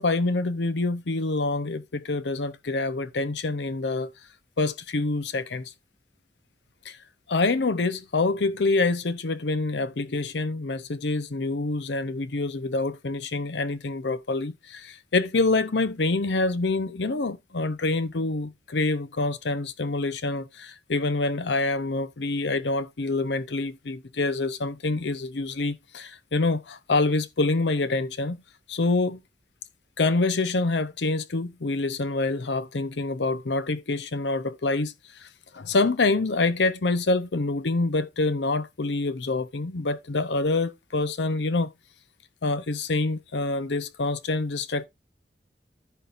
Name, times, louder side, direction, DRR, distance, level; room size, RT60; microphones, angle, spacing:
voice 1, 0.0-4.1 4.6-5.7 6.8-7.0 7.3-28.4 28.7-29.2 30.0-34.9 35.2-35.3 35.5-41.7 42.4-44.9, left 3 dB, 80° left, 0.7 m, -26 dB
14.5 x 5.3 x 2.5 m
head